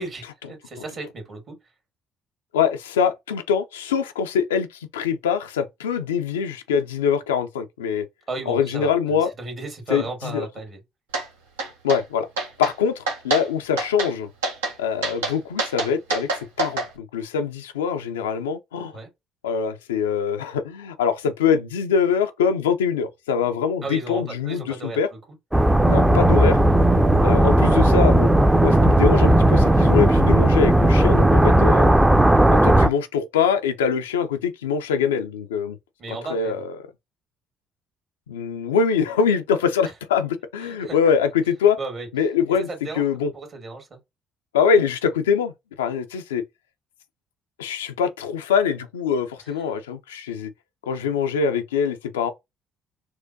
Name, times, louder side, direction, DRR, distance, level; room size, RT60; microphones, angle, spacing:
voice 1, 0.0-1.6 8.3-10.8 18.9-19.1 23.8-25.0 36.0-36.6 39.8-39.9 40.6-41.0 41.8-42.1 42.7-44.0, right 3 dB, 50° right, 1.6 m, -34 dB
voice 2, 2.5-8.0 8.5-9.3 9.9-10.5 11.8-12.3 12.6-14.3 14.8-18.9 19.4-25.1 25.9-26.6 27.2-28.3 28.6-31.9 32.5-35.8 36.1-36.7 38.3-41.8 42.1-42.7 43.0-43.3 44.5-45.5 45.8-46.4 47.6-50.5 50.9-52.3, left 7 dB, 90° left, 0.4 m, -23 dB
sound 1, 11.1-11.3 11.6-12.0 12.4-12.7 13.1-13.4 13.8-14.1 14.4-14.7 15.0-16.9, right 3 dB, 85° right, 0.8 m, -26 dB
sound 2, 25.5-32.9, right 1 dB, 10° right, 0.4 m, -16 dB
sound 3, 25.8-31.7, right 2 dB, 30° right, 1.1 m, -24 dB
4.3 x 2.2 x 2.7 m
hypercardioid pair, 55°, 0 cm